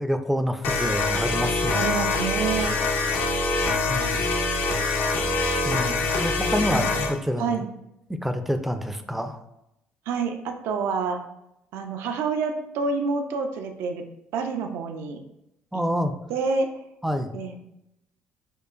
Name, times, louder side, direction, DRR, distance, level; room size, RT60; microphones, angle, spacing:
voice 1, 0.0-2.0 3.9-4.2 5.6-7.6 8.2-9.4 15.7-16.1 17.0-17.4, equal, 5° right, 7 dB, 0.4 m, -27 dB
sound 1, 0.6-7.1, left 3 dB, 70° left, 0.6 m, -24 dB
voice 2, 1.7-2.8 7.4-7.7 10.1-11.2 11.7-14.0 14.3-15.2 16.3-16.7 17.3-17.6, right 4 dB, 75° right, 5 dB, 0.5 m, -27 dB
4.6 x 2.4 x 2.5 m, 0.83 s
supercardioid pair, 75°, 4 cm